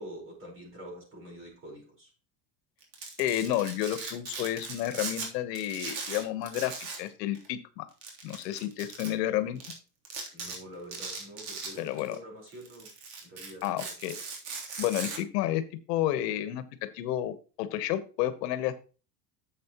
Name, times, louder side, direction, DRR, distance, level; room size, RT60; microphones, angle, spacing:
voice 1, 0.0-2.1 10.3-12.9 13.2-14.0, equal, 25° right, 0 dB, 4.5 m, -46 dB
Domestic sounds home sounds, 2.8-5.3 5.6-7.1 7.3-7.5 8.0-9.1 9.6-9.7 10.1-10.6 10.9-12.2 12.5-15.2, right 4 dB, 80° right, 3.4 m, -39 dB
voice 2, 3.2-7.9 8.2-9.6 11.8-12.2 13.6-14.2 14.8-15.6 15.9-18.8, left 13 dB, 85° left, 12 dB, 1.2 m, -31 dB
10.5 x 7.6 x 3.0 m, 0.34 s
supercardioid pair, 160°, 48 cm